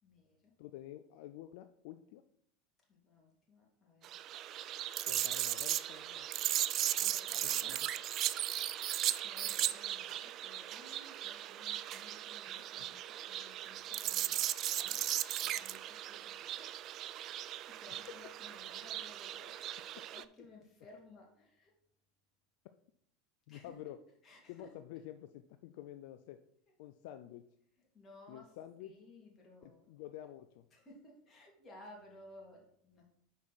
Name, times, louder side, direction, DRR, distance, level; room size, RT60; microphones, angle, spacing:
voice 1, 0.0-0.5 2.9-4.2 6.8-7.7 8.5-15.0 15.4-16.8 17.7-19.6 20.1-21.7 23.5-23.8 24.2-24.7 27.9-28.5 28.8-29.9 30.7-33.1, left 2 dB, 30° left, -2 dB, 2.9 m, -58 dB
voice 2, 0.6-2.2 5.0-6.3 7.6-7.9 12.6-13.0 18.1-18.2 23.5-24.0 24.5-26.4 26.8-27.4 28.3-28.9 29.6-30.7, left 13 dB, 65° left, 9 dB, 0.4 m, -49 dB
sound 1, 4.0-20.2, right 12 dB, 45° right, 0.3 m, -37 dB
6.5 x 5.1 x 4.4 m, 0.69 s
hypercardioid pair, 85°, 0 cm